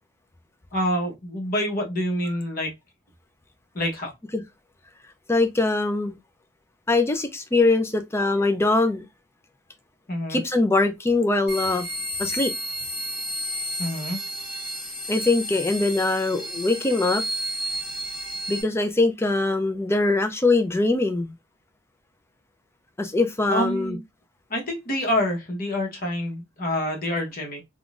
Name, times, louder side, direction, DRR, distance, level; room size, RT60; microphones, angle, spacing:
voice 1, 0.7-2.7 3.7-4.1 10.1-10.4 13.8-14.2 23.5-24.0 24.5-27.6, left 1 dB, 45° left, 1.0 m, -27 dB
voice 2, 5.3-6.2 6.9-9.0 10.3-11.9 12.2-12.5 15.1-17.2 18.5-21.3 23.0-24.0, left 2 dB, 10° left, 0.4 m, -22 dB
sound 1, 11.5-18.6, equal, 5° right, 1.5 m, -32 dB
3.7 x 2.3 x 2.4 m
head